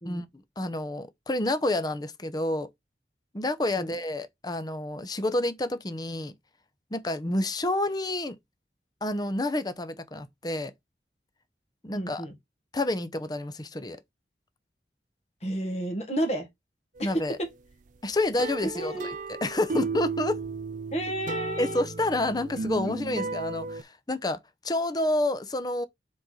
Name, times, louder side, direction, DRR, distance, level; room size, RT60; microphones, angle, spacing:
voice 1, 0.6-2.7 3.3-6.3 6.9-8.4 9.0-10.7 11.8-12.2 12.7-14.0 17.0-17.4 18.0-18.9 19.4-20.4 21.6-24.4 24.6-25.9, left 1 dB, 20° left, 0.7 m, -29 dB
voice 2, 11.9-12.3 15.4-16.5 17.0-17.1 18.6-19.1 20.9-21.8, right 1 dB, 35° left, 1.6 m, -31 dB
sound 1, 17.0-17.3 18.4-23.8, right 4 dB, 45° right, 0.5 m, -34 dB
7.4 x 3.9 x 4.1 m
head